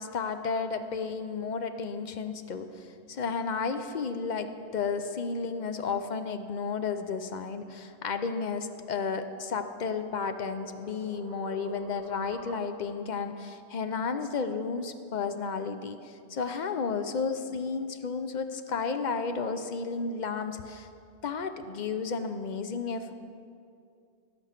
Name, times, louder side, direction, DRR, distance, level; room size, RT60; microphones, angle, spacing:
voice 1, 0.0-20.9 21.2-23.1, left 5 dB, 50° left, 9 dB, 0.5 m, -32 dB
sound 1, 9.4-13.1, right 4 dB, 45° right, 1.1 m, -48 dB
16.5 x 6.8 x 5.8 m, 2.5 s
omnidirectional pair, 1.3 m